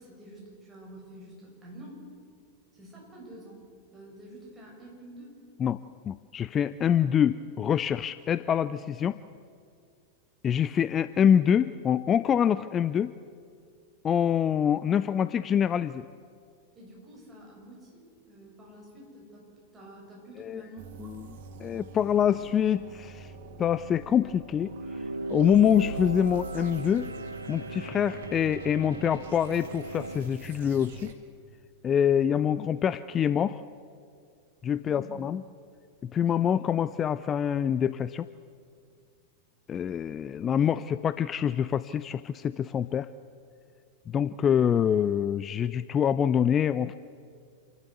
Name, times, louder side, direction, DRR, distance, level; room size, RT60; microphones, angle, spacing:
voice 1, 0.0-2.0 2.7-3.6 3.9-5.3 16.7-21.2 34.8-35.2, right 1 dB, 15° right, -3 dB, 7.5 m, -48 dB
voice 2, 6.0-9.2 10.4-13.1 14.0-16.1 20.4-20.6 21.0-21.3 21.6-23.3 23.6-24.7 25.3-27.1 27.5-31.1 31.8-33.6 34.6-35.4 36.0-38.3 39.7-43.1 44.1-46.9, left 8 dB, 25° left, 15 dB, 0.4 m, -25 dB
sound 1, 20.8-31.1, right 3 dB, 55° right, 1.8 m, -44 dB
sound 2, 24.6-30.3, right 2 dB, 80° right, 0.8 m, -38 dB
28.0 x 12.5 x 8.2 m, 2.3 s
figure-of-eight pair, 90°, 0 cm